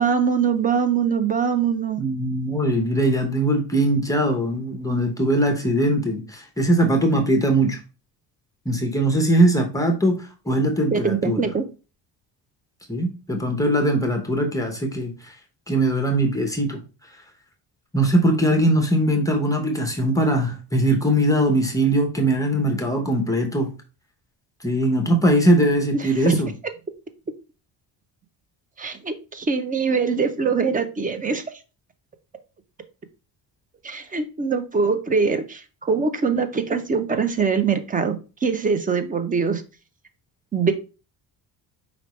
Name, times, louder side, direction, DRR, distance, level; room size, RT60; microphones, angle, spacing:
voice 1, 0.0-2.1 10.9-11.6 25.9-26.4 28.8-31.4 33.8-39.6 40.5-40.7, right 5 dB, 20° right, 9 dB, 0.5 m, -23 dB
voice 2, 2.0-7.8 8.6-11.5 12.9-15.3 15.7-16.8 17.9-23.7 24.6-26.5, right 1 dB, 10° left, 2 dB, 0.8 m, -21 dB
5.0 x 3.4 x 3.1 m, 0.32 s
cardioid pair, 145°, 43 cm